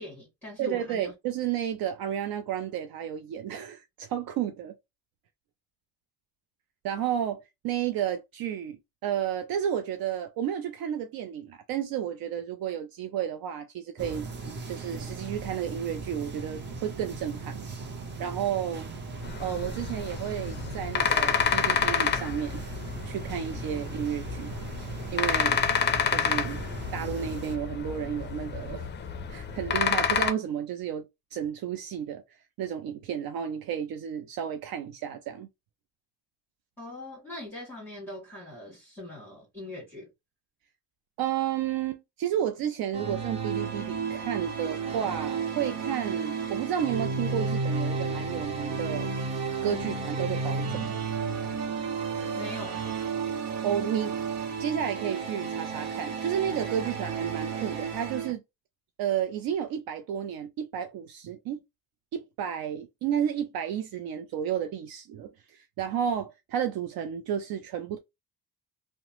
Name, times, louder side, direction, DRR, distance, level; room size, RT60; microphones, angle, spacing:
voice 1, 0.0-1.1 36.8-40.1 52.4-52.9, left 1 dB, 5° left, 1.4 m, -41 dB
voice 2, 0.6-4.8 6.8-14.3 14.7-17.6 18.2-18.9 19.4-22.6 23.1-24.5 25.1-25.6 26.1-26.6 26.9-28.9 29.3-32.2 32.6-35.5 41.2-49.1 49.6-50.9 53.6-54.2 54.6-58.4 59.0-61.6 62.1-68.0, right 9 dB, 65° right, 0.5 m, -32 dB
sound 1, 14.0-27.6, right 3 dB, 30° right, 0.7 m, -39 dB
sound 2, 19.2-30.3, left 7 dB, 30° left, 0.4 m, -29 dB
sound 3, 42.9-58.3, right 5 dB, 90° right, 1.0 m, -32 dB
2.8 x 2.1 x 2.9 m
cardioid pair, 100°, 39 cm